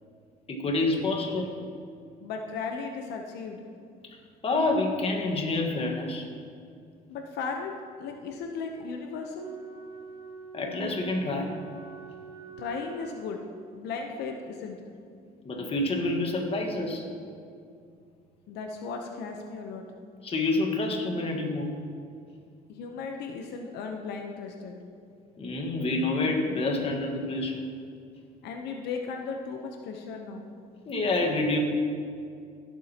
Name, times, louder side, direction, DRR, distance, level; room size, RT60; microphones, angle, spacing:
voice 1, 0.5-1.6 4.4-6.3 10.5-11.5 15.4-17.1 20.2-21.7 25.4-27.6 30.9-31.6, left 2 dB, 35° left, 2 dB, 1.5 m, -28 dB
voice 2, 2.2-3.7 7.1-9.5 12.6-13.4 13.7-14.8 18.5-19.9 22.7-24.7 28.4-30.5, left 5 dB, 80° left, 3 dB, 0.9 m, -36 dB
Wind instrument woodwind instrument, 9.3-13.7, right 6 dB, 80° right, 2.0 m, -45 dB
16.5 x 7.5 x 2.9 m, 2.3 s
cardioid pair, 110°, 17 cm